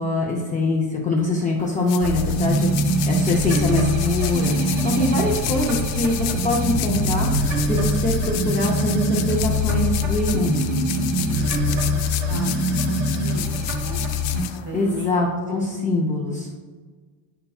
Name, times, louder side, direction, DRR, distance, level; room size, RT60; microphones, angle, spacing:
voice 1, 0.0-7.3 7.7-10.8 14.7-16.5, left 2 dB, 20° left, -3 dB, 0.4 m, -23 dB
sound 1, 1.6-15.2, left 13 dB, 70° left, 0.5 m, -33 dB
sound 2, 2.0-14.4, equal, 85° right, 1.7 m, -23 dB
Car / Engine, 4.2-12.5, right 2 dB, 45° right, 1.0 m, -34 dB
voice 2, 11.1-14.0 14.5-16.0 16.3-16.4, equal, 65° right, 1 dB, 1.9 m, -36 dB
8.7 x 5.6 x 2.3 m, 1.5 s
cardioid pair, 170°, 48 cm